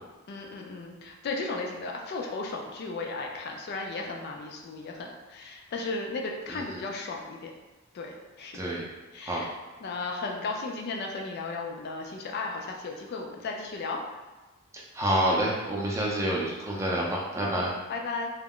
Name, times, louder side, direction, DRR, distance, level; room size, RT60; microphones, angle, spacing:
voice 1, 0.3-7.5 7.9-8.6 9.1-9.5 9.8-14.0 17.5-18.3, left 3 dB, 50° left, 1 dB, 0.3 m, -35 dB
voice 2, 6.5-6.8 8.5-8.9 9.3-9.4 15.0-17.7, right 1 dB, 15° right, -4 dB, 0.4 m, -28 dB
2.3 x 2.0 x 3.6 m, 1.2 s
head